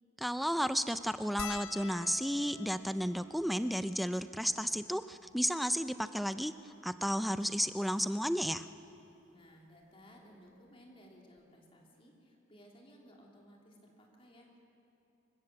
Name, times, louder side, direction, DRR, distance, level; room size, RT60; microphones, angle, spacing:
voice 1, 0.2-8.7, equal, ahead, 11 dB, 0.4 m, -33 dB
sound 1, 1.4-6.0 6.7-6.8 7.0-7.2 8.5-8.7 10.2-10.3 10.5-10.7, left 6 dB, 80° left, 0.6 m, -49 dB
voice 2, 9.3-14.6, equal, 30° left, -1 dB, 3.2 m, -58 dB
25.5 x 15.5 x 7.5 m, 2.9 s
head